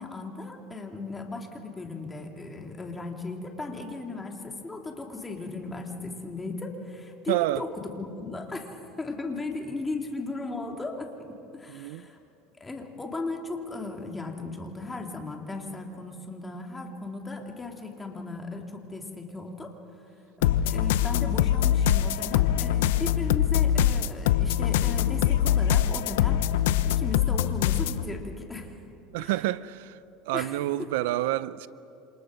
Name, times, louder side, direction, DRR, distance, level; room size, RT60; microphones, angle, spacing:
voice 1, 0.0-12.2 12.6-19.7 20.4-26.4 26.9-28.7 29.2-29.3 30.3-31.1, left 3 dB, 10° left, 2.8 m, -36 dB
voice 2, 7.3-7.6 11.7-12.1 29.1-30.0 30.2-31.7, right 16 dB, 80° right, 0.6 m, -28 dB
sound 1, 20.4-28.0, left 10 dB, 90° left, 0.8 m, -23 dB
28.0 x 27.0 x 6.4 m
supercardioid pair, 135°, 0 cm